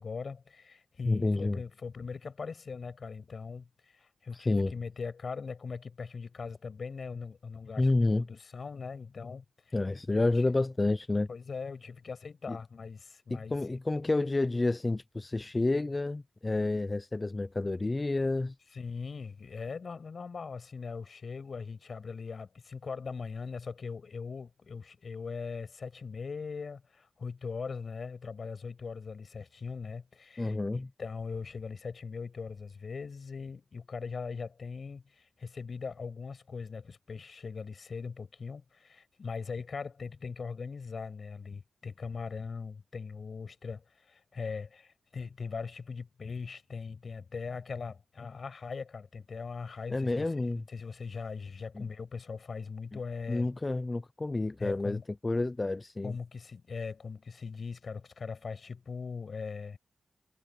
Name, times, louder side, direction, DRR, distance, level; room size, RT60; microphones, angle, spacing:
voice 1, 0.0-9.7 10.1-10.3 11.3-13.8 18.7-53.5 54.6-55.1 56.0-59.8, left 5 dB, 60° left, 6.7 m, -40 dB
voice 2, 1.1-1.6 4.3-4.7 7.8-8.3 9.7-11.3 12.5-12.6 13.3-18.5 30.4-30.9 49.9-50.6 51.7-51.9 52.9-53.0 53.3-56.2, left 2 dB, 30° left, 0.5 m, -29 dB
wide cardioid pair, 85°, 0 cm